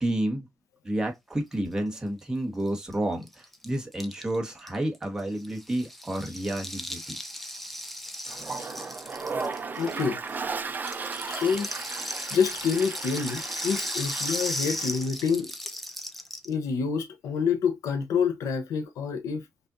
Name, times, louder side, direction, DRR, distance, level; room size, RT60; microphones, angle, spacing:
voice 1, 0.0-0.5 0.8-7.2, right 1 dB, 15° right, 1.5 m, -30 dB
Rattle (instrument), 2.7-2.8 2.9-3.0 3.2-10.3 10.7-16.5, equal, 5° left, 0.8 m, -36 dB
Toilet flush, 8.3-15.0, right 4 dB, 35° right, 0.6 m, -36 dB
voice 2, 9.8-10.2 11.2-11.7 12.3-15.5 16.4-19.5, left 6 dB, 90° left, 0.9 m, -27 dB
5.5 x 2.6 x 2.7 m
cardioid pair, 100°, 5 cm